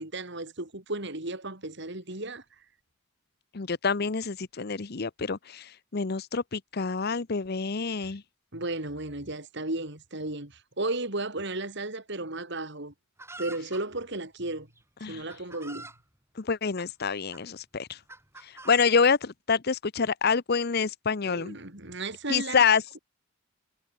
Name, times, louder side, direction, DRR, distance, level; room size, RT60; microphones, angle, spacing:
voice 1, 0.0-2.4 8.5-12.9 13.4-14.7 15.1-15.9 21.2-22.6, right 2 dB, 60° right, 4.1 m, -34 dB
voice 2, 3.5-8.2 15.0-15.2 16.4-18.0 18.4-21.6 22.3-22.8, left 5 dB, 50° left, 0.8 m, -27 dB
Chicken rooster, 13.2-13.8 14.8-14.9 15.3-16.0 16.8-17.4 18.1-18.8, right 2 dB, 15° right, 5.6 m, -44 dB
head